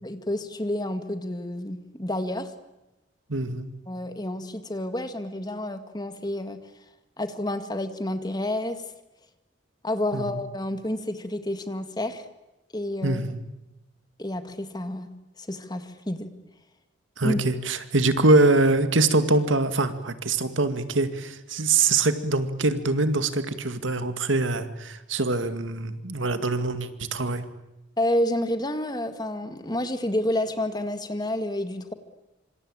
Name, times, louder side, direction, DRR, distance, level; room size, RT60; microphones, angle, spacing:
voice 1, 0.0-2.5 3.9-6.6 7.2-8.8 9.8-12.3 12.7-13.2 14.2-15.1 15.4-16.3 17.2-17.4 28.0-31.9, left 1 dB, 20° left, 9 dB, 1.9 m, -29 dB
voice 2, 3.3-3.7 10.1-10.4 13.0-13.4 17.2-27.4, right 2 dB, 85° right, 10 dB, 2.2 m, -24 dB
26.5 x 25.5 x 8.9 m, 0.97 s
head